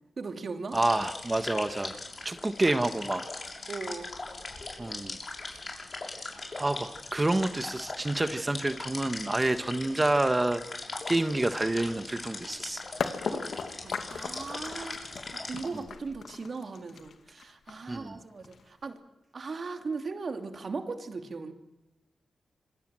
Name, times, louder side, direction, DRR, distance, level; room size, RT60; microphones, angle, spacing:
voice 1, 0.2-0.8 3.7-4.1 13.2-13.5 13.8-19.0 19.3-21.5, right 4 dB, 55° right, 6 dB, 2.8 m, -38 dB
sound 1, 0.7-15.6, left 3 dB, 45° left, 6.5 m, -40 dB
voice 2, 0.7-1.9 2.2-3.3 4.8-5.2 6.6-10.8 11.1-12.8 15.7-15.8 17.9-18.2, right 2 dB, 25° right, 9 dB, 1.5 m, -28 dB
sound 2, 13.0-18.8, left 6 dB, 80° left, 2.1 m, -37 dB
27.0 x 22.5 x 7.7 m, 0.96 s
cardioid pair, 65°, 0 cm